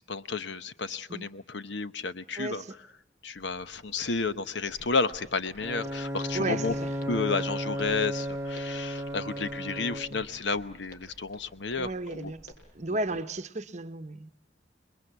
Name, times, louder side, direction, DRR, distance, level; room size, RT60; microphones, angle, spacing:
voice 1, 0.0-2.6 3.2-6.7 7.1-12.3, left 4 dB, 75° left, 0.9 m, -32 dB
voice 2, 2.4-2.7 6.3-6.9 11.8-12.5 12.7-14.3, right 2 dB, 40° right, 1.0 m, -34 dB
sound 1, 3.3-13.2, equal, 35° left, 5.9 m, -60 dB
Walk footsteps, 4.7-12.5, left 1 dB, 50° left, 5.7 m, -52 dB
Bowed string instrument, 5.6-10.4, equal, 15° right, 0.9 m, -34 dB
27.5 x 21.5 x 8.1 m
head